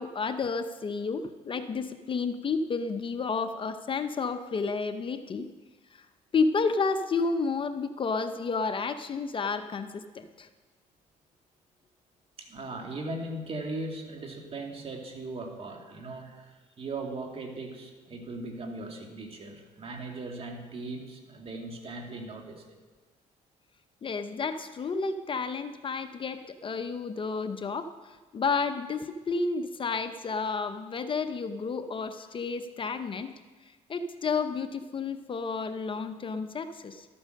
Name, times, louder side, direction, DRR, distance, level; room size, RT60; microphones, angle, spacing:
voice 1, 0.0-5.5 5.9-6.1 6.3-10.5 24.0-33.3 33.6-37.1, left 4 dB, 35° left, 9 dB, 0.7 m, -31 dB
voice 2, 12.4-22.8, right 2 dB, 40° right, 3 dB, 2.3 m, -38 dB
13.0 x 8.8 x 6.5 m, 1.3 s
cardioid pair, 90°, 14 cm